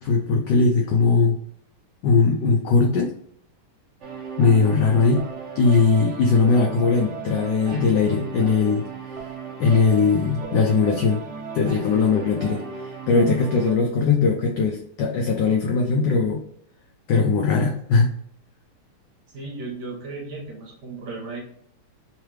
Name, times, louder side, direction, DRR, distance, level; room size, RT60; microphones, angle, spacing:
voice 1, 0.0-1.4 2.0-3.1 4.4-5.3 5.6-9.3 9.6-11.2 11.5-16.4 17.1-18.1, left 4 dB, 80° left, 1 dB, 1.0 m, -20 dB
sound 1, 4.0-13.7, right 5 dB, 85° right, 0.6 m, -35 dB
voice 2, 19.3-21.4, right 3 dB, 55° right, -1 dB, 1.5 m, -35 dB
3.6 x 3.1 x 3.2 m, 0.66 s
omnidirectional pair, 2.4 m